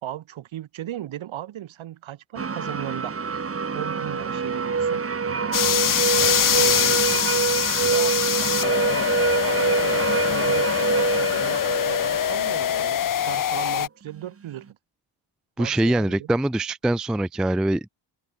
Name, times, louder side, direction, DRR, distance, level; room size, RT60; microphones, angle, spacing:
voice 1, 0.0-3.2 3.7-5.6 6.1-7.3 7.8-9.1 9.4-14.8 15.6-16.3, right 12 dB, 70° right, 4.1 m, -37 dB
sound 1, 2.4-13.0, right 5 dB, 30° right, 2.0 m, -25 dB
sound 2, 2.8-3.2 4.8-5.3 6.9-7.3 8.9-9.4 10.9-11.4, left 2 dB, 15° left, 4.5 m, -50 dB
sound 3, 5.5-13.9, left 10 dB, 40° left, 0.9 m, -23 dB
voice 2, 15.6-17.9, right 1 dB, ahead, 0.4 m, -23 dB
open air
cardioid pair, 95°, 48 cm